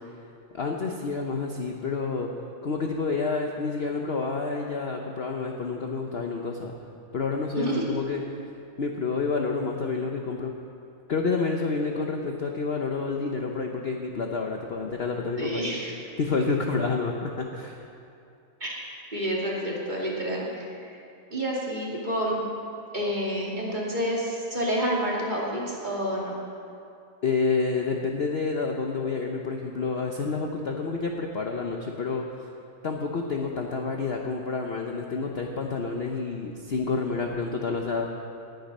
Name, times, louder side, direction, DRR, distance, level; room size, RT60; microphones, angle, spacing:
voice 1, 0.5-2.3 2.6-6.7 7.1-8.2 8.8-10.5 11.1-15.8 16.2-17.8 27.2-32.3 32.8-38.1, left 4 dB, 60° left, 2 dB, 0.6 m, -29 dB
voice 2, 15.3-15.9 18.6-18.7 19.1-21.0 21.3-22.4 22.9-26.3, equal, 25° right, -4 dB, 2.3 m, -29 dB
18.5 x 9.3 x 5.4 m, 2.6 s
omnidirectional pair, 2.2 m